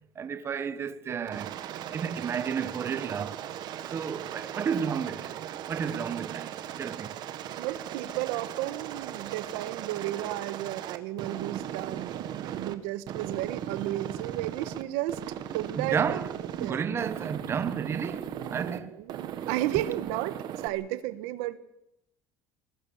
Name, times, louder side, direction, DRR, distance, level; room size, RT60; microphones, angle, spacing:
voice 1, 0.2-1.5 1.9-3.4 3.9-5.4 5.7-6.5 6.8-7.1 15.8-18.9, right 7 dB, 25° right, 1.2 m, -32 dB
Aircraft, 1.3-12.7 13.1-14.8 15.1-16.7 17.0-18.8 19.1-20.7, right 10 dB, 50° right, 1.6 m, -38 dB
voice 2, 7.6-15.2 15.5-16.2 16.6-16.8 18.7-21.6, right 15 dB, 85° right, 1.3 m, -33 dB
21.5 x 20.0 x 7.2 m
cardioid pair, 155°, 10 cm